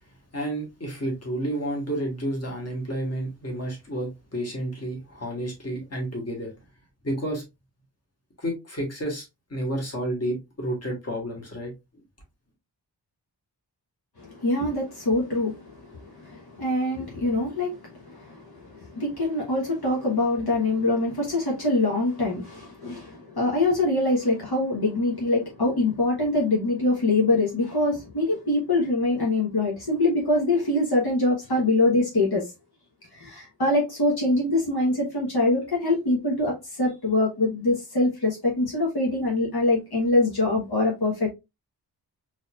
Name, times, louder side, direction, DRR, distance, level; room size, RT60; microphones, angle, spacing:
voice 1, 0.3-6.5 7.0-7.4 8.4-9.2 9.5-11.7, right 1 dB, 35° left, 1.6 m, -30 dB
voice 2, 14.2-32.5 33.1-41.3, left 2 dB, 65° left, 1.3 m, -24 dB
4.0 x 3.0 x 2.4 m
wide cardioid pair, 105°, 41 cm